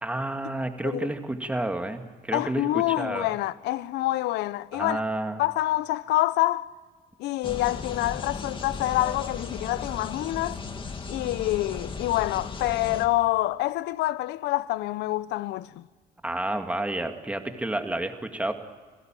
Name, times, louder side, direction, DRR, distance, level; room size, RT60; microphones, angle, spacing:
voice 1, 0.0-3.4 4.7-5.4 16.2-18.5, right 1 dB, 10° right, 2.2 m, -30 dB
voice 2, 2.3-5.0 5.4-6.7 7.2-10.6 11.1-15.9, left 16 dB, 85° left, 0.7 m, -27 dB
sound 1, 7.4-13.1, left 4 dB, 30° left, 2.3 m, -36 dB
29.0 x 17.0 x 9.1 m
cardioid pair, 110°, 17 cm